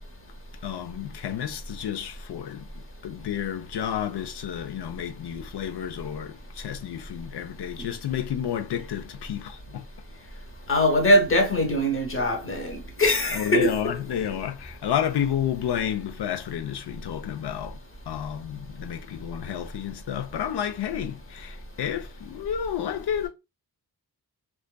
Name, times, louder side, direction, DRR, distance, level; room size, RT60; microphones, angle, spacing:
voice 1, 0.6-2.6 3.0-9.8 13.3-17.8 18.1-23.3, left 9 dB, 75° left, 0.5 m, -31 dB
voice 2, 10.7-13.7, equal, 30° left, 0.9 m, -22 dB
2.5 x 2.3 x 2.2 m
cardioid pair, 60°, 41 cm